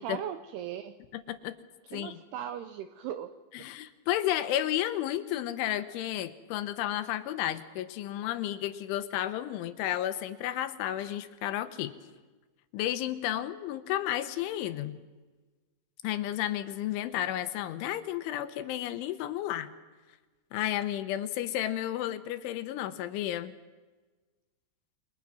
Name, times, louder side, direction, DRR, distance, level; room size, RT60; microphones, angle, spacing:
voice 1, 0.0-1.0 1.8-3.3, right 10 dB, 80° right, 10 dB, 2.4 m, -38 dB
voice 2, 1.1-1.6 1.9-2.2 3.5-11.9 12.7-15.0 16.0-19.7 20.5-23.5, left 12 dB, 80° left, 11 dB, 3.4 m, -32 dB
29.5 x 23.5 x 6.2 m, 1.3 s
omnidirectional pair, 5.7 m